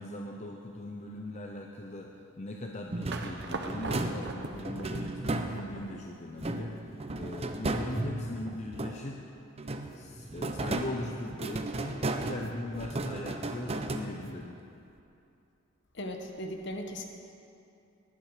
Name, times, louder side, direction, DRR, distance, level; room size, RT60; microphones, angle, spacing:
voice 1, 0.0-6.7 7.1-9.2 9.9-14.6, left 1 dB, 35° left, 1 dB, 0.7 m, -40 dB
sound 1, 2.9-5.9 6.4-9.2 9.6-14.5, right 2 dB, 30° right, 0.7 m, -35 dB
sound 2, 3.1-6.1, right 3 dB, 55° right, 1.0 m, -40 dB
voice 2, 15.9-17.0, equal, 55° left, 3 dB, 1.4 m, -37 dB
19.0 x 11.0 x 5.1 m, 2.7 s
head